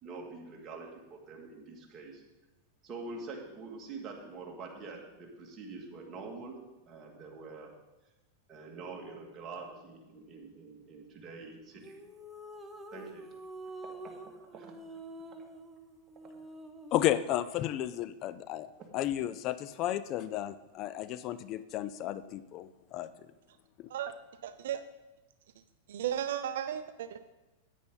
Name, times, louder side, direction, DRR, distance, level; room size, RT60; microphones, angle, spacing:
voice 1, 0.0-2.2 2.8-6.6 6.9-7.7 8.5-12.0 12.9-13.3 13.8-14.7, right 3 dB, 30° right, 0 dB, 2.2 m, -45 dB
sound 1, 11.8-17.2, right 1 dB, 10° right, 0.9 m, -47 dB
voice 2, 16.9-18.7 18.9-23.1 23.8-23.9, left 13 dB, 45° left, 15 dB, 0.4 m, -33 dB
voice 3, 24.4-24.8 25.9-27.3, right 10 dB, 75° right, 11 dB, 0.5 m, -35 dB
9.8 x 9.2 x 4.0 m, 1.1 s
hypercardioid pair, 120°, 0 cm